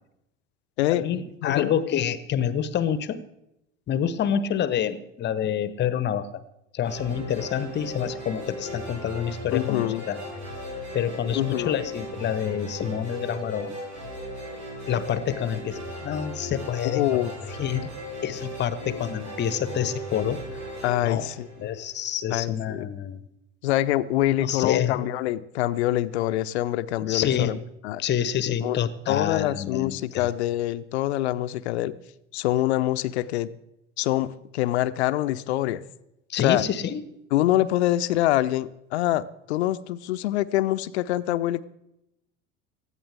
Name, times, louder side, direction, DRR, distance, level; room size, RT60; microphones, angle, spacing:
voice 1, 0.8-3.2 3.9-6.4 6.7-10.2 10.9-13.8 14.9-17.3 17.6-17.9 18.2-20.4 21.0-21.3 21.6-23.2 24.3-25.0 27.0-27.6 28.0-30.3 36.3-37.0, left 9 dB, 30° left, 15 dB, 0.9 m, -27 dB
voice 2, 1.4-1.7 9.5-10.1 11.3-11.8 16.8-17.3 20.8-21.5 22.3-22.9 23.6-27.6 27.8-28.0 28.6-28.8 29.1-31.9 32.3-33.5 34.0-35.8 36.4-36.7 37.3-41.6, left 14 dB, 60° left, 15 dB, 0.7 m, -25 dB
sound 1, 6.8-22.1, equal, 70° right, 7.1 m, -37 dB
19.0 x 14.0 x 3.5 m, 0.85 s
figure-of-eight pair, 70°, 37 cm